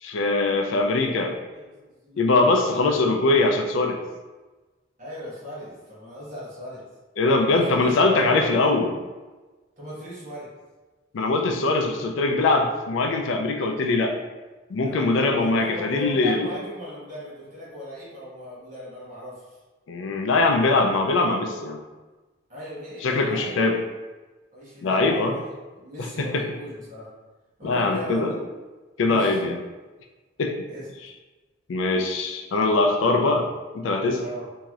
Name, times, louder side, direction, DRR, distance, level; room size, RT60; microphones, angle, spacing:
voice 1, 0.0-1.4 2.2-4.0 7.2-8.9 11.1-14.2 14.7-16.5 19.9-21.8 23.0-23.8 24.8-25.3 26.0-26.5 27.6-28.3 29.0-29.6 30.4-30.6 31.7-33.5 33.7-34.2, left 3 dB, 80° left, 3 dB, 0.4 m, -22 dB
voice 2, 5.0-6.8 7.5-8.6 9.8-10.5 14.8-19.6 22.5-23.6 24.5-25.4 25.7-27.1 27.6-28.3 29.0-29.4 30.7-30.8 34.2-34.4, equal, 40° right, -8 dB, 1.1 m, -37 dB
3.0 x 2.7 x 2.4 m, 1.2 s
head